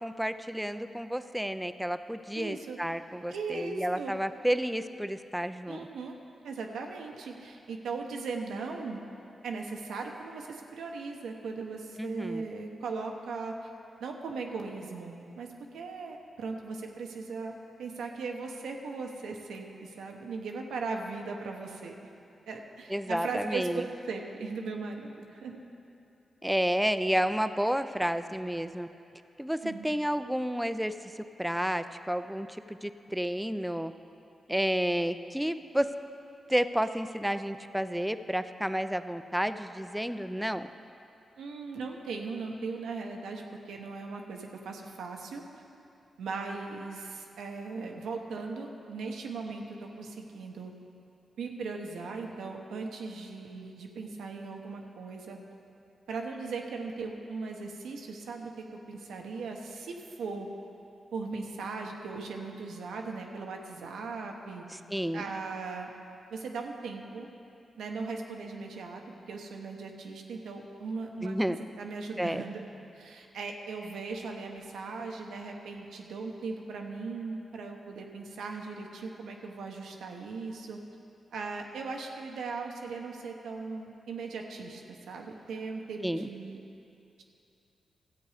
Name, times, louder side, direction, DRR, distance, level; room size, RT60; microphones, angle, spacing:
voice 1, 0.0-5.9 12.0-12.4 22.9-23.9 26.4-28.9 29.4-33.9 34.5-35.9 36.5-40.7 64.7-65.2 71.2-71.6 72.2-72.4 86.0-86.3, equal, 5° right, 11 dB, 0.5 m, -31 dB
voice 2, 2.3-2.8 3.3-4.1 5.7-6.2 6.4-9.0 9.4-13.6 14.0-21.9 22.5-25.6 29.6-29.9 41.4-45.4 46.2-50.7 51.4-55.4 56.1-60.5 61.1-64.7 65.1-65.9 66.3-67.3 67.8-69.0 69.3-71.4 71.8-72.6 72.9-80.8 81.3-86.6, right 4 dB, 85° right, 2 dB, 1.0 m, -38 dB
14.0 x 8.0 x 5.0 m, 2.7 s
supercardioid pair, 50°, 0 cm